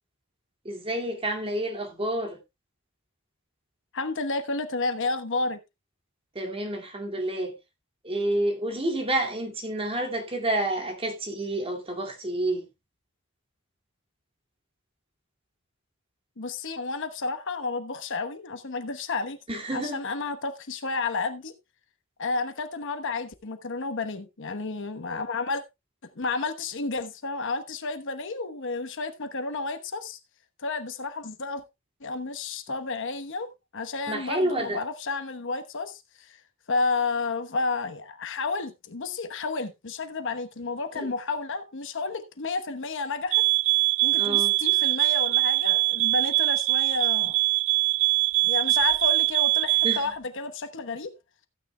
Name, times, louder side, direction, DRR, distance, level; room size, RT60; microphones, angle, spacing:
voice 1, 0.6-2.4 6.3-7.5 8.0-12.7 19.5-20.0 34.1-34.8 40.9-41.1 44.2-44.5 49.8-50.1, right 1 dB, 25° right, 2.3 m, -29 dB
voice 2, 3.9-5.6 16.4-19.4 19.7-21.5 22.2-25.6 26.2-30.2 30.6-31.6 32.0-36.4 36.7-43.4 44.0-47.4 48.4-51.1, left 3 dB, 60° left, 1.1 m, -31 dB
sound 1, 43.3-50.1, right 26 dB, 65° right, 0.4 m, -23 dB
14.5 x 9.6 x 2.3 m
head